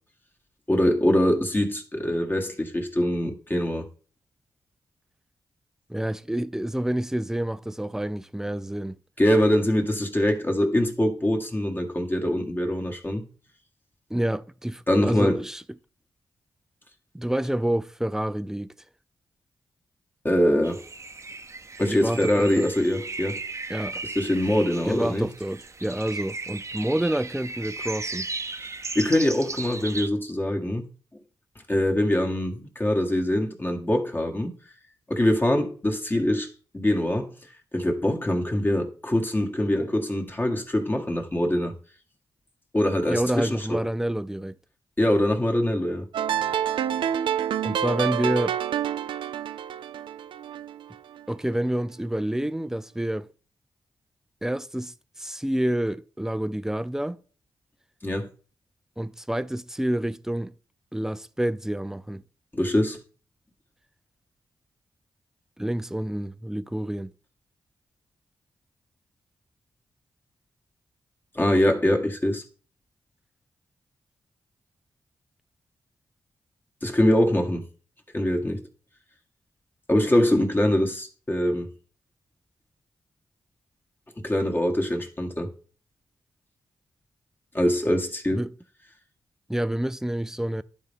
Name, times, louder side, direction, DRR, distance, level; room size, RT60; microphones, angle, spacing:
voice 1, 0.7-3.8 9.2-13.2 14.9-15.4 20.2-20.8 21.8-23.4 24.1-25.3 28.9-30.9 31.7-34.5 35.1-37.3 37.7-41.7 42.7-43.8 45.0-46.1 58.0-58.3 62.5-63.0 71.3-72.4 76.8-77.6 78.1-78.6 79.9-81.7 84.2-85.5 87.5-88.4, left 1 dB, 25° left, 1.7 m, -23 dB
voice 2, 5.9-9.0 14.1-15.6 17.1-18.7 21.9-22.7 23.7-24.0 24.8-28.3 43.1-44.5 47.6-48.6 51.3-53.3 54.4-57.2 59.0-60.5 60.9-62.2 65.6-67.1 88.3-88.5 89.5-90.6, right 1 dB, 5° right, 0.4 m, -28 dB
sound 1, 20.6-30.1, right 3 dB, 35° right, 0.8 m, -36 dB
sound 2, 46.1-51.2, right 9 dB, 80° right, 0.4 m, -28 dB
11.0 x 4.1 x 3.6 m
cardioid pair, 55°, 8 cm